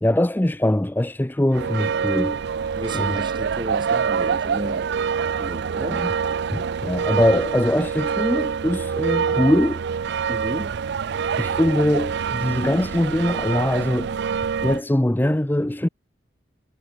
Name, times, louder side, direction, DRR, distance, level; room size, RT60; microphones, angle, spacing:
voice 1, 0.0-2.4 2.9-3.2 5.9-6.1 6.5-9.8 11.4-14.2 14.6-15.9, left 1 dB, 10° left, 0.5 m, -22 dB
sound 1, 1.5-14.8, right 6 dB, 65° right, 0.4 m, -26 dB
voice 2, 2.8-4.9 5.4-6.1 10.3-10.8, right 1 dB, 25° right, 3.5 m, -33 dB
head